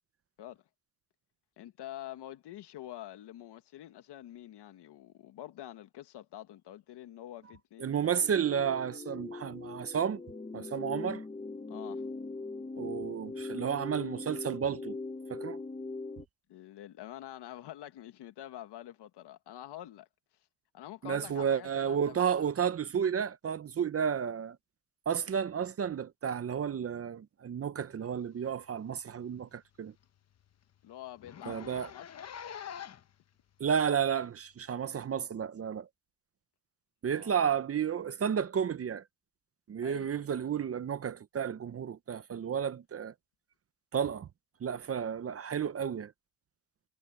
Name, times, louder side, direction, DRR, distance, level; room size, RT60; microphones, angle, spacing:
voice 1, 1.6-8.3 11.7-12.1 16.5-20.1 20.7-22.5 30.8-32.1 37.1-37.3 39.8-40.3, left 13 dB, 70° left, 1.9 m, -47 dB
voice 2, 7.8-10.2 10.5-11.2 12.8-15.0 15.3-15.6 21.0-24.6 25.1-29.9 31.5-31.9 33.6-35.9 37.0-39.0 39.7-43.1 43.9-44.3 44.6-46.1, right 7 dB, 35° right, 0.8 m, -32 dB
sound 1, 8.2-16.2, left 3 dB, 15° left, 1.3 m, -41 dB
Zipper (clothing), 28.5-28.7 29.1-29.2 29.6-29.7 30.0-30.1 30.4-30.5 31.2-33.2 33.9-34.0 35.0-35.1, left 8 dB, 35° left, 1.0 m, -45 dB
cardioid pair, 115°, 42 cm